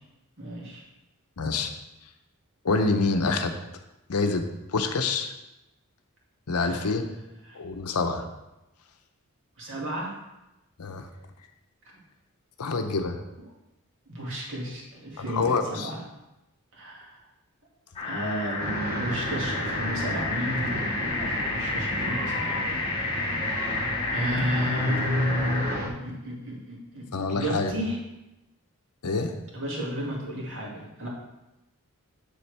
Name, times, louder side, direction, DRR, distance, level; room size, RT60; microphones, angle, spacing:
voice 1, 0.4-0.8 6.6-6.9 7.4-7.6 9.6-10.1 13.4-13.5 14.1-16.0 16.7-17.2 18.0-23.1 24.1-28.0 29.5-31.1, equal, 60° right, -3 dB, 2.1 m, -32 dB
voice 2, 1.4-1.7 2.6-3.5 4.1-5.3 6.5-7.0 7.5-8.3 10.8-11.1 12.6-13.2 15.3-15.9 27.1-27.7 29.0-29.3, left 3 dB, 85° left, 7 dB, 0.7 m, -26 dB
sound 1, 18.0-25.8, left 3 dB, 25° left, 1.0 m, -30 dB
sound 2, 18.6-25.9, equal, 45° right, 1.1 m, -34 dB
7.1 x 7.1 x 3.4 m, 0.96 s
head